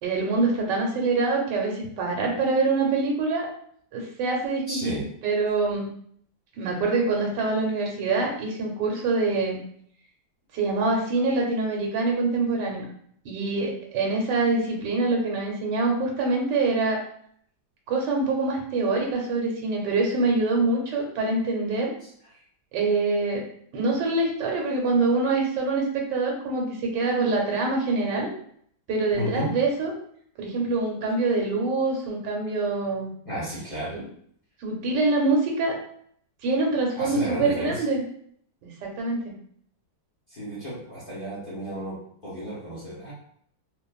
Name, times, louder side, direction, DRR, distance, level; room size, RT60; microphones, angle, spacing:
voice 1, 0.0-3.5 3.9-5.9 6.6-9.6 10.5-12.8 13.2-17.0 17.9-21.9 22.7-23.4 23.7-28.3 28.9-29.9 30.4-33.1 33.9-34.0 34.6-35.8 36.4-38.0 38.6-39.2, right 3 dB, 85° right, 0 dB, 1.3 m, -25 dB
voice 2, 4.7-5.0 29.1-29.5 33.2-34.0 37.0-37.8 40.3-43.1, equal, 40° left, -9 dB, 1.0 m, -33 dB
2.6 x 2.4 x 2.3 m, 0.64 s
omnidirectional pair, 1.8 m